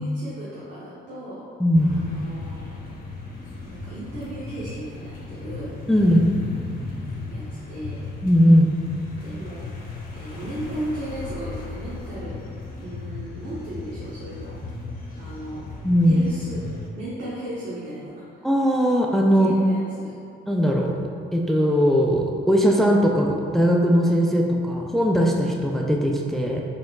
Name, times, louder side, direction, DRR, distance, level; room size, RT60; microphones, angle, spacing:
voice 1, 0.0-1.4 1.8-2.6 3.6-5.7 7.3-8.1 9.2-9.7 10.1-12.4 12.8-14.6 15.2-15.6 16.0-16.6 16.9-18.2 19.3-20.2, right 1 dB, 75° right, -9 dB, 0.9 m, -35 dB
voice 2, 1.6-1.9 5.9-6.3 8.2-8.7 15.8-16.2 18.4-19.5 20.5-20.9 21.3-26.6, equal, ahead, 0 dB, 0.3 m, -19 dB
sound 1, 1.7-16.9, left 3 dB, 45° left, 0.9 m, -36 dB
4.2 x 3.7 x 2.3 m, 2.3 s
cardioid pair, 90°, 20 cm